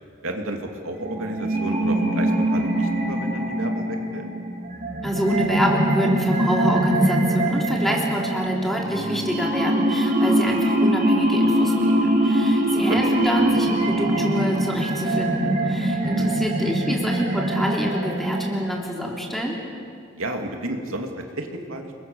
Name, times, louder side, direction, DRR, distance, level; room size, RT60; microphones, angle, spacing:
voice 1, 0.2-4.2 12.6-13.0 16.0-16.3 20.1-21.9, right 1 dB, 80° right, 3 dB, 2.7 m, -32 dB
sound 1, 1.0-18.9, right 1 dB, 40° right, 3.3 m, -23 dB
voice 2, 5.0-19.6, equal, ahead, -1 dB, 3.5 m, -27 dB
30.0 x 22.5 x 6.9 m, 2.3 s
head